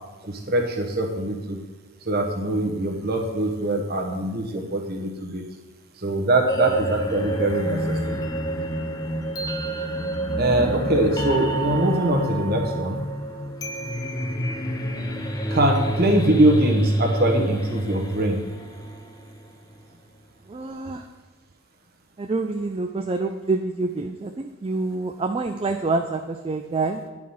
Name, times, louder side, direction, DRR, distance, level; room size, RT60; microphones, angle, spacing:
voice 1, 0.3-1.6 2.0-5.4 6.0-8.2 10.4-13.0 15.5-18.4, right 1 dB, 45° right, 2 dB, 1.1 m, -23 dB
sound 1, 6.5-19.5, right 1 dB, 15° left, 0.6 m, -28 dB
voice 2, 20.5-21.0 22.2-27.0, right 3 dB, 25° right, 6 dB, 0.3 m, -27 dB
10.0 x 4.8 x 5.5 m, 1.2 s
head